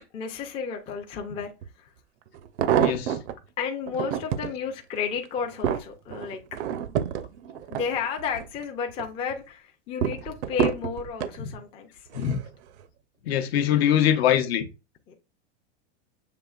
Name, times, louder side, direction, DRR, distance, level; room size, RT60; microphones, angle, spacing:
voice 1, 0.1-1.5 1.8-1.9 3.6-6.6 7.7-12.1 15.1-15.2, left 6 dB, 15° left, 0.4 m, -32 dB
sound 1, 1.6-1.7 2.3-3.4 3.9-4.5 5.1-8.5 8.9-9.4 10.0-11.4 12.1-12.5 12.8-12.9, right 9 dB, 80° right, 0.6 m, -28 dB
voice 2, 2.8-3.2 11.4-11.5 12.1-12.4 13.3-14.7, left 10 dB, 65° left, 0.7 m, -23 dB
6.8 x 2.8 x 2.3 m
supercardioid pair, 140°, 34 cm